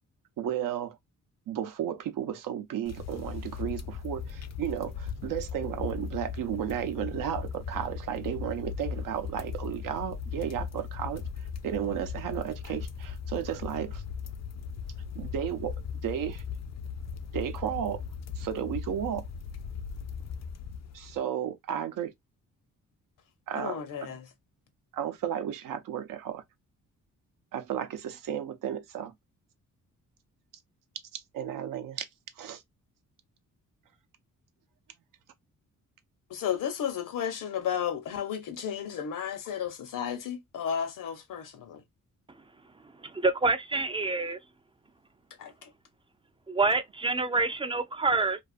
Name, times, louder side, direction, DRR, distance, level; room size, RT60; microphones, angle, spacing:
voice 1, 0.4-1.0 1.5-14.0 15.2-15.7 16.0-16.4 17.3-18.0 18.4-19.3 20.9-22.1 23.5-24.1 24.9-26.4 27.5-29.1 31.1-32.0 32.4-32.6, right 10 dB, 80° right, 0.6 m, -33 dB
sound 1, 2.9-21.2, left 6 dB, 55° left, 0.5 m, -38 dB
voice 2, 23.5-24.3 36.3-41.8 45.4-45.7, left 8 dB, 75° left, 0.8 m, -33 dB
voice 3, 43.1-44.4 46.5-48.4, right 3 dB, 15° right, 0.3 m, -27 dB
2.4 x 2.4 x 2.3 m
cardioid pair, 95°, 32 cm